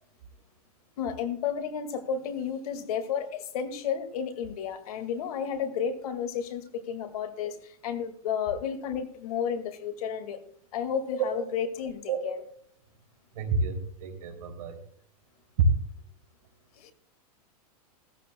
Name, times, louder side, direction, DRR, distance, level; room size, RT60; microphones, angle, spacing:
voice 1, 1.0-10.4 10.7-12.4 16.8-16.9, left 7 dB, 70° left, 9 dB, 2.0 m, -32 dB
voice 2, 13.3-14.8 15.6-15.7, right 3 dB, 70° right, 4 dB, 3.1 m, -27 dB
16.5 x 14.5 x 2.2 m, 0.62 s
hypercardioid pair, 135°, 20 cm